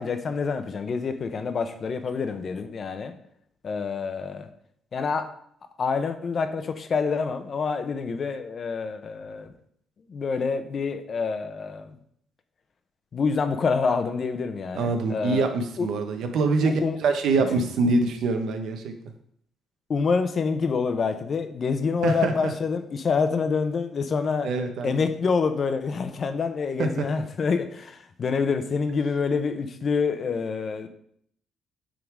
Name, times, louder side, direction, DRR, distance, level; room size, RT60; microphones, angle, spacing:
voice 1, 0.0-3.1 3.6-4.5 4.9-5.3 5.8-9.5 10.1-11.9 13.1-15.5 15.8-15.9 16.6-17.0 19.9-24.5 24.8-30.9, left 5 dB, 50° left, 9 dB, 0.9 m, -27 dB
voice 2, 14.7-18.9 22.0-22.5 24.4-25.0 26.8-26.9, right 3 dB, 75° right, 6 dB, 1.1 m, -24 dB
8.8 x 3.9 x 4.8 m, 0.68 s
cardioid pair, 90°, 0 cm